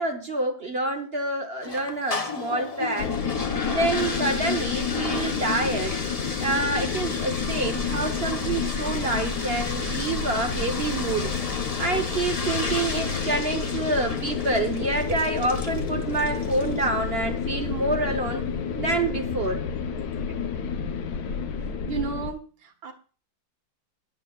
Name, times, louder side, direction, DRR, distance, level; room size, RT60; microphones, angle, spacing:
voice 1, 0.0-3.1 3.6-6.0 6.4-11.3 11.8-18.4 18.8-19.6, right 2 dB, 45° right, 4 dB, 0.8 m, -27 dB
sound 1, 1.6-16.9, left 3 dB, 40° left, 0.5 m, -34 dB
sound 2, 3.0-22.3, left 6 dB, 60° left, 1.1 m, -30 dB
voice 2, 21.9-22.9, right 6 dB, 80° right, 5 dB, 2.0 m, -33 dB
16.5 x 10.5 x 2.3 m, 0.37 s
omnidirectional pair, 2.1 m